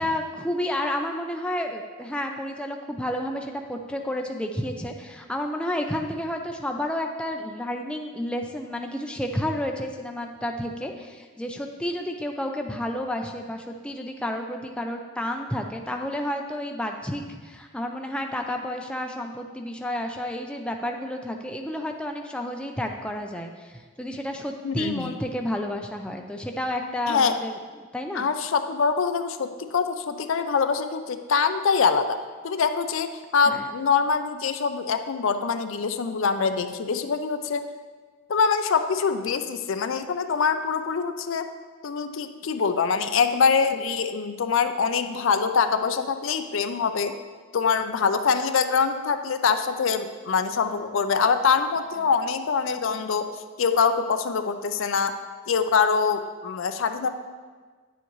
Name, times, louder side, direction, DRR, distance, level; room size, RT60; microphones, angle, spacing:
voice 1, 0.0-27.5 27.9-28.3 33.5-33.7, left 1 dB, 5° left, 2 dB, 0.4 m, -31 dB
voice 2, 24.6-25.1 27.1-27.4 28.1-32.2 32.4-37.7 38.3-41.5 41.8-47.1 47.5-53.3 53.6-55.1 55.5-57.1, left 5 dB, 65° left, 8 dB, 0.5 m, -24 dB
9.8 x 7.1 x 3.1 m, 1.4 s
head